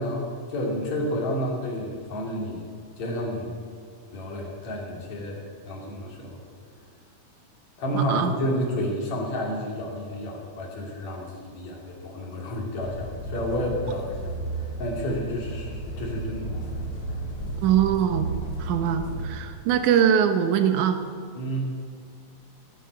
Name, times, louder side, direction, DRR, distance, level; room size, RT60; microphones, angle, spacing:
voice 1, 0.0-2.7 3.0-3.5 4.1-5.4 5.7-6.4 7.8-16.5 21.4-21.7, equal, 65° left, -1 dB, 4.0 m, -30 dB
voice 2, 7.9-8.3 17.6-18.3 18.6-21.0, right 9 dB, 85° right, 8 dB, 2.3 m, -22 dB
sound 1, 12.8-19.3, right 2 dB, 45° left, 4.3 m, -33 dB
16.0 x 8.6 x 8.2 m, 2.2 s
omnidirectional pair, 3.4 m